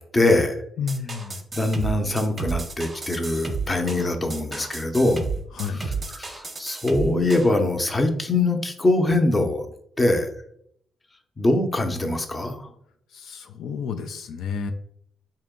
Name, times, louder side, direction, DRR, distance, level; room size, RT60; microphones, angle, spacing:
voice 1, 0.1-0.6 1.5-5.2 6.2-9.6 10.0-10.3 11.4-12.7, left 2 dB, 20° left, 5 dB, 0.6 m, -22 dB
voice 2, 0.8-1.4 5.5-5.9 13.1-14.7, left 6 dB, 75° left, 7 dB, 0.3 m, -31 dB
sound 1, 0.9-7.5, right 4 dB, 25° right, 0.7 m, -32 dB
3.6 x 2.8 x 3.6 m, 0.69 s
cardioid pair, 90°, 0 cm